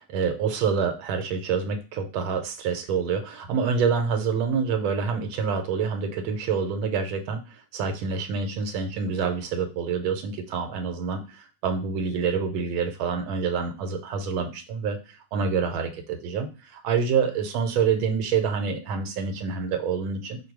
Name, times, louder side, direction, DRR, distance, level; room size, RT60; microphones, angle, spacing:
voice 1, 0.0-20.4, right 6 dB, 80° right, 7 dB, 1.4 m, -27 dB
5.1 x 2.2 x 4.5 m, 0.33 s
omnidirectional pair, 2.2 m